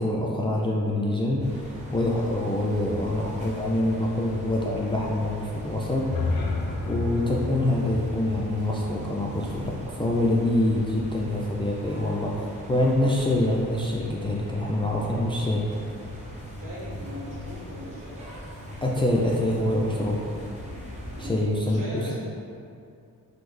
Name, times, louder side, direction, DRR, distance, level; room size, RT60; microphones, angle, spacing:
voice 1, 0.0-6.1 6.9-15.7 18.8-20.2 21.2-22.1, left 1 dB, 15° left, -4 dB, 0.3 m, -25 dB
sound 1, 1.4-21.3, equal, 20° right, 0.8 m, -40 dB
sound 2, 6.1-10.0, left 3 dB, 75° left, 0.5 m, -32 dB
voice 2, 16.6-18.3 21.1-21.3 21.6-22.1, equal, 55° right, -6 dB, 1.0 m, -39 dB
3.4 x 2.1 x 3.1 m, 2.5 s
supercardioid pair, 45°, 37 cm